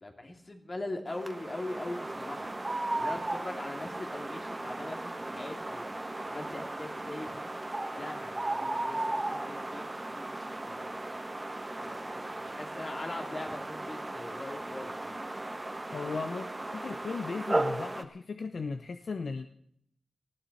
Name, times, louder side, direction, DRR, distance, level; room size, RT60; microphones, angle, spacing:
voice 1, 0.0-2.5 3.0-5.9 6.3-7.4 8.0-11.1 11.8-15.2, left 2 dB, 35° left, 3 dB, 2.7 m, -41 dB
sound 1, 1.1-18.0, right 2 dB, 20° right, 1.2 m, -36 dB
voice 2, 15.9-16.5 16.7-19.6, left 4 dB, 65° left, 7 dB, 0.8 m, -36 dB
19.5 x 15.5 x 4.2 m, 0.68 s
wide cardioid pair, 135°, 0 cm